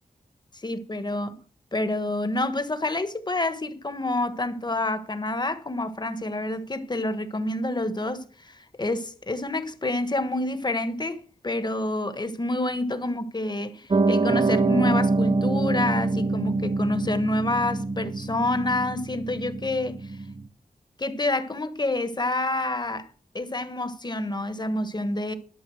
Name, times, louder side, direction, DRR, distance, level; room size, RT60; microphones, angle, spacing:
voice 1, 0.6-1.4 1.7-20.0 21.0-23.1 23.3-25.3, left 2 dB, 30° left, 1.4 m, -28 dB
Piano, 13.9-20.5, right 3 dB, 35° right, 0.8 m, -25 dB
12.0 x 7.1 x 6.4 m
wide cardioid pair, 95°, 15 cm